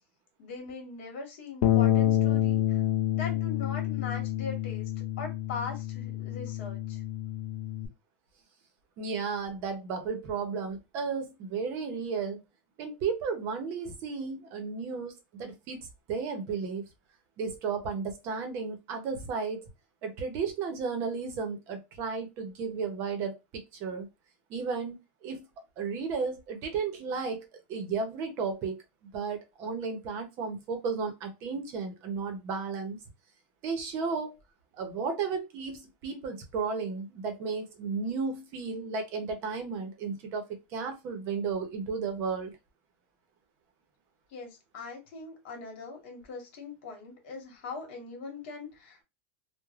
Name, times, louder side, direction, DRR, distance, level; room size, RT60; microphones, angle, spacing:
voice 1, 0.4-2.8 3.1-4.9 5.2-7.0 44.3-49.0, left 4 dB, 60° left, 1.4 m, -41 dB
Bass guitar, 1.6-7.9, left 13 dB, 45° left, 0.4 m, -28 dB
voice 2, 9.0-12.4 12.8-16.8 17.4-19.7 20.0-24.1 24.5-25.4 25.8-28.8 29.1-33.0 33.6-34.4 34.7-42.5, right 5 dB, 35° right, 0.7 m, -34 dB
3.2 x 2.1 x 2.4 m
supercardioid pair, 160°, 7 cm